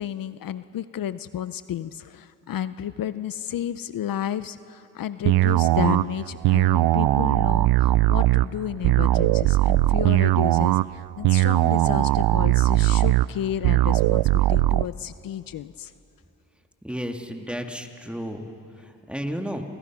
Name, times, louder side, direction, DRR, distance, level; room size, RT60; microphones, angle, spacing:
voice 1, 0.0-15.9, left 10 dB, 60° left, 14 dB, 0.7 m, -32 dB
sound 1, 5.3-14.9, right 16 dB, 80° right, 0.5 m, -20 dB
voice 2, 16.8-18.5 18.8-19.6, equal, 5° right, 4 dB, 2.0 m, -32 dB
28.5 x 28.0 x 6.1 m, 2.9 s
cardioid pair, 100°, 38 cm